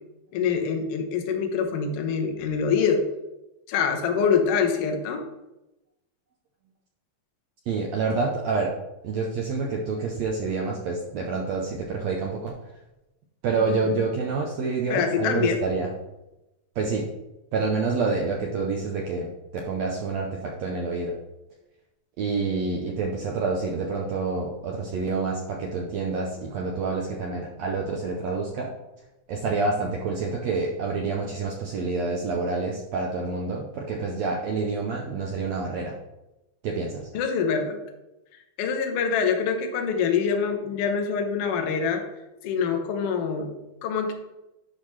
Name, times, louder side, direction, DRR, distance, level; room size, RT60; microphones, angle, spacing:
voice 1, 0.3-3.0 3.7-5.2 13.9-14.0 14.9-15.6 37.1-37.8 38.6-42.0 42.4-44.1, left 6 dB, 80° left, 4 dB, 1.3 m, -25 dB
voice 2, 7.7-8.7 9.0-12.5 13.4-15.9 16.7-17.1 17.5-19.3 19.5-21.1 22.2-28.7 29.3-35.9 36.6-37.1, right 4 dB, 70° right, -1 dB, 1.7 m, -27 dB
10.5 x 5.7 x 3.2 m, 0.95 s
omnidirectional pair, 3.9 m